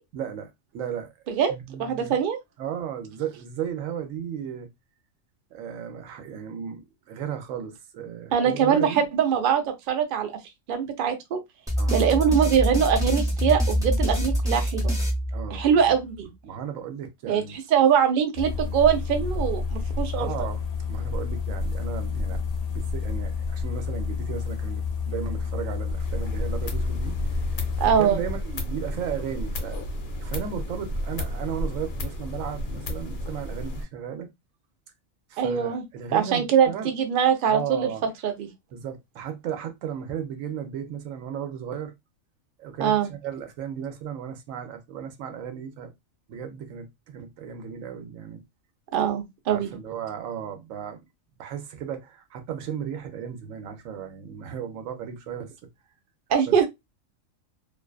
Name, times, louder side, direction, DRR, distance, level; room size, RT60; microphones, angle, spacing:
voice 1, 0.1-1.1 1.5-2.2 2.6-4.7 5.5-9.0 11.8-12.1 15.3-15.6 15.9-16.0 16.4-17.6 20.2-20.6 20.9-22.4 22.7-27.2 27.8-29.8 30.2-34.3 35.3-36.9 37.5-38.0 38.7-41.9 42.6-45.9 46.3-48.4 49.5-51.0 51.4-55.5 56.5-56.6, right 8 dB, 80° right, 1.0 m, -35 dB
voice 2, 1.8-2.4 8.3-10.3 10.7-11.4 11.9-14.9 15.5-16.3 17.3-20.3 27.8-28.2 35.4-35.8 36.1-37.9 38.2-38.5 42.8-43.1 48.9-49.7 56.3-56.7, right 8 dB, 60° right, 0.6 m, -22 dB
sound 1, 11.7-15.9, equal, 5° right, 0.5 m, -25 dB
sound 2, 18.3-27.9, left 4 dB, 75° left, 0.3 m, -29 dB
sound 3, 25.9-33.8, left 1 dB, 55° left, 0.8 m, -32 dB
2.5 x 2.3 x 2.3 m
omnidirectional pair, 1.4 m